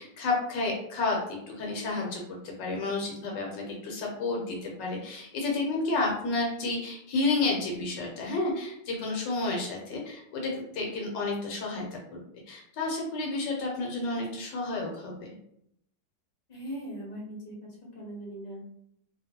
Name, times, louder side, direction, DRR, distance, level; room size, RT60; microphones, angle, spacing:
voice 1, 0.0-12.2 12.5-15.3, left 3 dB, 75° left, -1 dB, 1.3 m, -31 dB
voice 2, 16.5-17.6 17.9-18.6, right 1 dB, 35° left, -4 dB, 0.9 m, -39 dB
2.8 x 2.5 x 2.8 m, 0.74 s
omnidirectional pair, 2.0 m